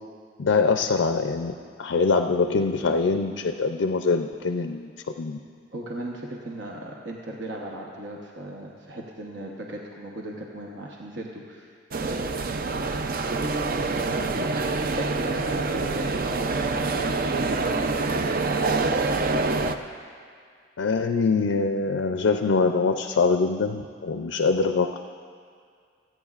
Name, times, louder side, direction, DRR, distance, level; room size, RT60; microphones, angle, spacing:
voice 1, 0.4-1.5 1.8-4.9 5.2-5.4 20.8-25.0, left 4 dB, 85° left, 6 dB, 0.5 m, -23 dB
voice 2, 5.7-11.7 12.0-18.3, right 1 dB, 65° right, -2 dB, 1.0 m, -37 dB
sound 1, 11.9-19.7, right 3 dB, 50° right, 0.5 m, -26 dB
27.0 x 9.3 x 2.4 m, 2.1 s
head